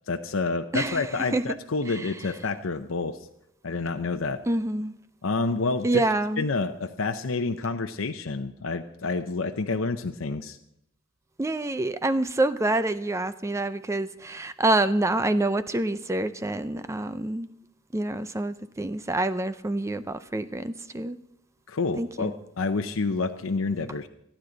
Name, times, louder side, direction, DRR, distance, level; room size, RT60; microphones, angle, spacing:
voice 1, 0.1-3.2 3.6-4.4 5.2-5.9 6.4-10.6 21.7-24.1, left 3 dB, 80° left, 6 dB, 0.7 m, -28 dB
voice 2, 0.7-1.5 1.9-2.2 4.5-4.9 5.8-6.5 11.4-17.5 17.9-21.2 22.0-22.3, right 2 dB, 15° right, 12 dB, 0.4 m, -27 dB
28.0 x 10.0 x 4.0 m, 0.79 s
head